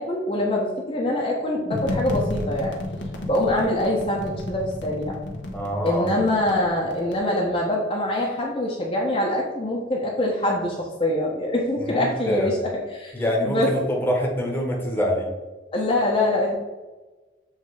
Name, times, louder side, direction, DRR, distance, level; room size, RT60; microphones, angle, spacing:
voice 1, 0.0-2.8 3.3-5.2 5.8-12.6 12.9-13.1 13.4-13.7 15.7-16.6, left 1 dB, 30° left, -4 dB, 0.9 m, -24 dB
sound 1, 1.7-7.2, left 1 dB, 80° left, 1.2 m, -32 dB
voice 2, 5.5-6.1 11.8-12.6 13.1-15.3, equal, 10° left, -1 dB, 1.2 m, -25 dB
7.3 x 3.6 x 4.9 m, 1.2 s
head